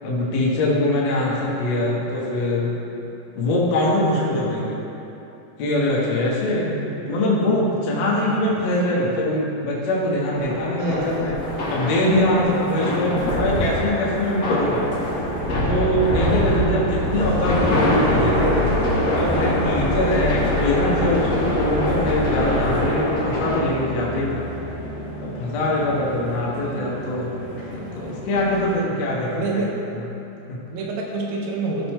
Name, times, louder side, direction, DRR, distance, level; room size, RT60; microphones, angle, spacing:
voice 1, 0.0-2.7 3.3-4.8 5.6-6.7 7.1-11.4 11.7-14.9 15.7-18.7 19.2-24.5 25.2-29.7 30.5-30.6, left 1 dB, 75° left, -5 dB, 1.5 m, -23 dB
voice 2, 6.8-7.1 10.8-11.3 12.8-13.7 16.2-17.6 20.0-20.4 26.0-27.2 29.3-29.7 30.7-31.9, right 3 dB, 85° right, -2 dB, 3.5 m, -30 dB
sound 1, 10.4-23.6, left 1 dB, 50° left, 2.1 m, -24 dB
sound 2, 12.1-28.8, right 1 dB, 30° left, 0.9 m, -34 dB
sound 3, 17.1-22.8, left 1 dB, 60° right, 3.2 m, -28 dB
14.5 x 5.9 x 3.7 m, 2.9 s
omnidirectional pair, 5.1 m